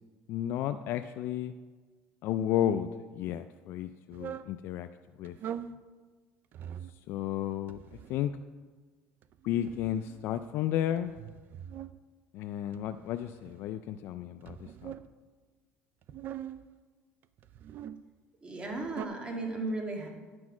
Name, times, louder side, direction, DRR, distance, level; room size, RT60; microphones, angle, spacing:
voice 1, 0.3-1.5 2.2-4.9 5.2-5.4 7.1-8.3 9.4-11.1 12.3-14.9, left 11 dB, 65° left, 9 dB, 0.4 m, -33 dB
sound 1, 4.1-4.5 5.2-5.8 6.5-7.0 7.7-8.3 9.2-10.5 11.0-12.0 12.7-13.7 14.4-15.1 16.0-16.7 17.4-18.0 18.6-19.1, right 10 dB, 50° right, 0.4 m, -43 dB
voice 2, 18.4-20.1, right 2 dB, 25° right, 1 dB, 1.9 m, -35 dB
10.5 x 6.2 x 6.1 m, 1.4 s
supercardioid pair, 110°, 4 cm